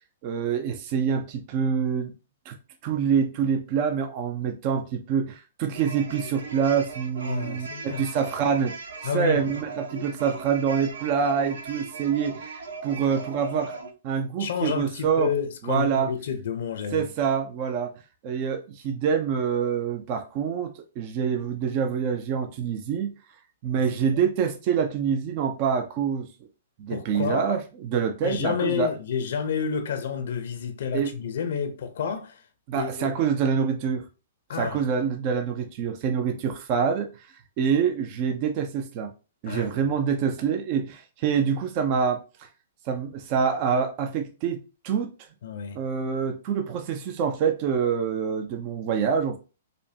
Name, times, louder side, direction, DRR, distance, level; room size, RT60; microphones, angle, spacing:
voice 1, 0.2-2.1 2.5-2.6 2.8-8.7 9.0-13.8 14.0-15.3 15.6-16.1 16.9-17.9 18.2-23.1 23.6-26.3 26.8-28.9 30.9-31.1 32.7-34.0 34.5-39.1 39.4-42.5 42.9-45.1 45.7-49.4, right 7 dB, 40° right, 0.5 m, -26 dB
sound 1, 5.7-13.9, right 4 dB, 85° right, 0.7 m, -39 dB
voice 2, 7.2-8.0 9.0-9.4 14.4-17.1 24.1-24.2 26.9-27.5 28.2-32.4 32.7-33.1 34.5-34.8 39.5-39.7 45.4-45.8, left 7 dB, 70° left, 0.7 m, -30 dB
5.0 x 2.2 x 2.8 m
hypercardioid pair, 145°, 0 cm